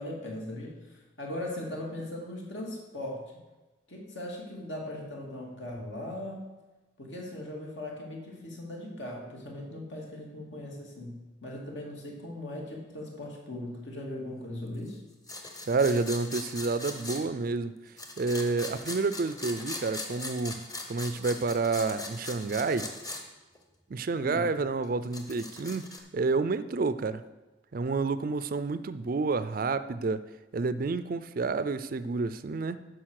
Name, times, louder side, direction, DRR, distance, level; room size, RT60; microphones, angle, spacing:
voice 1, 0.0-3.3 3.9-6.5 7.0-15.0 24.2-24.4, left 1 dB, 70° left, -1 dB, 2.5 m, -39 dB
sound 1, 15.3-17.2 18.0-23.2 23.5-23.6 24.8-26.0, left 2 dB, 20° left, 1.0 m, -40 dB
voice 2, 15.7-17.7 18.2-20.6 20.9-22.9 23.9-25.9 26.1-27.2 27.7-30.2 30.5-32.8, right 3 dB, 45° right, 14 dB, 0.4 m, -29 dB
12.0 x 4.9 x 6.5 m, 1.1 s
head